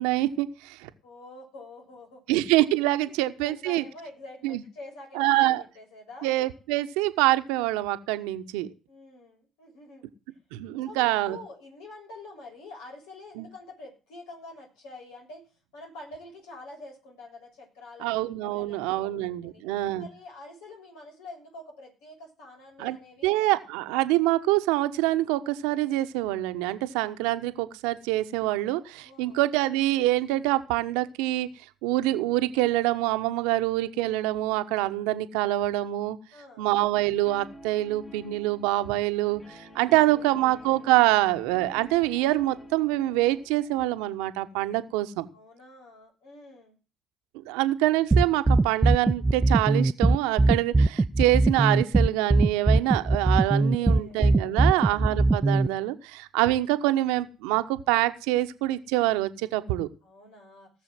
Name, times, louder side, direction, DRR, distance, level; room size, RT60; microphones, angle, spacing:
voice 1, 0.0-0.9 2.3-3.8 4.4-4.6 5.1-5.6 6.2-8.7 10.5-11.4 13.4-13.5 18.0-20.1 22.8-23.0 23.2-31.5 31.8-36.2 36.6-45.3 47.4-59.9, right 16 dB, 80° right, 10 dB, 1.1 m, -25 dB
voice 2, 1.0-2.4 3.1-6.3 8.9-10.1 10.8-15.5 15.7-19.6 20.0-23.4 29.0-29.4 36.3-36.7 39.9-40.6 45.3-46.8 53.4-54.2 54.5-54.9 60.0-60.7, left 2 dB, 80° left, 1 dB, 6.7 m, -47 dB
Guitar, 37.2-43.8, equal, 35° left, 5.7 m, -49 dB
sound 1, 48.1-55.7, right 2 dB, 25° right, 0.6 m, -20 dB
18.5 x 6.9 x 7.7 m, 0.34 s
hypercardioid pair, 50°, 0 cm